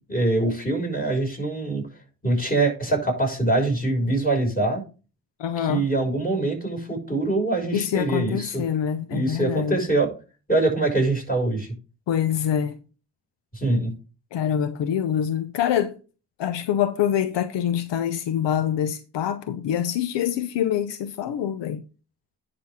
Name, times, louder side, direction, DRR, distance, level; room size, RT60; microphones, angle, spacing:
voice 1, 0.1-1.8 2.2-4.8 5.6-8.6 9.1-10.1 10.5-11.7 13.5-13.9, right 2 dB, 20° left, 5.9 m, -24 dB
voice 2, 5.4-5.8 7.7-9.8 12.1-12.8 14.3-16.0 16.4-21.8, left 9 dB, 80° left, 0.7 m, -25 dB
10.5 x 6.2 x 3.6 m
supercardioid pair, 45°, 42 cm